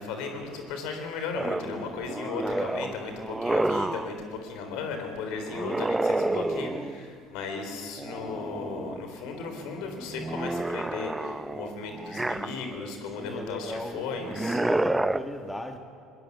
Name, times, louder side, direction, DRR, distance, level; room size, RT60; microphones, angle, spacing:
voice 1, 0.0-14.6, left 4 dB, 65° left, 5 dB, 3.8 m, -36 dB
sound 1, 1.3-4.2 5.5-7.1 8.0-9.0 9.4-12.9 14.2-15.2, right 2 dB, 10° right, 0.7 m, -30 dB
voice 2, 2.4-2.7 6.6-6.9 13.2-15.8, left 1 dB, 10° left, 5 dB, 1.7 m, -38 dB
21.5 x 19.5 x 7.2 m, 2.7 s
hypercardioid pair, 65°, 0 cm